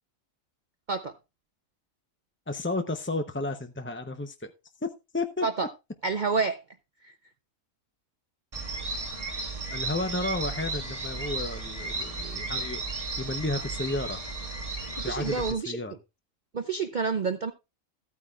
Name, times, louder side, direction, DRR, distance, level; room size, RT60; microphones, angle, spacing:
voice 1, 2.5-4.5 5.1-5.5 9.7-12.8 13.2-14.2 15.0-15.9, left 2 dB, 15° left, 7 dB, 0.5 m, -32 dB
voice 2, 6.0-6.6 7.0-7.1 15.0-15.8 16.5-17.5, right 4 dB, 45° right, 8 dB, 0.8 m, -28 dB
sound 1, 8.5-15.5, right 3 dB, 25° right, 1.3 m, -34 dB
14.5 x 9.4 x 2.4 m, 0.25 s
omnidirectional pair, 1.4 m